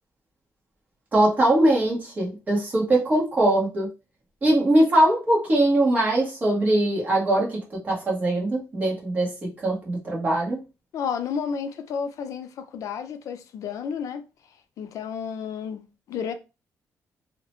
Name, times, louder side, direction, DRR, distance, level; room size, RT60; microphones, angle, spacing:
voice 1, 1.1-3.9 4.4-7.6 7.8-10.6, right 1 dB, 30° right, 1.1 m, -21 dB
voice 2, 10.9-14.2 14.8-16.3, left 7 dB, 70° left, 0.5 m, -31 dB
2.7 x 2.1 x 3.0 m
cardioid pair, 155°, 6 cm